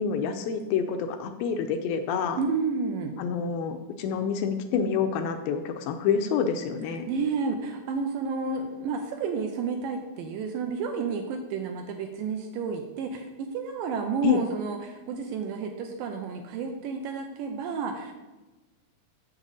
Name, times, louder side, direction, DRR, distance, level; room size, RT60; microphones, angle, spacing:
voice 1, 0.0-2.4 3.2-7.1 14.2-14.4, left 6 dB, 80° left, 7 dB, 2.2 m, -27 dB
voice 2, 2.4-3.2 7.1-18.1, right 5 dB, 80° right, 4 dB, 2.0 m, -31 dB
7.4 x 7.3 x 4.0 m, 1.1 s
omnidirectional pair, 4.3 m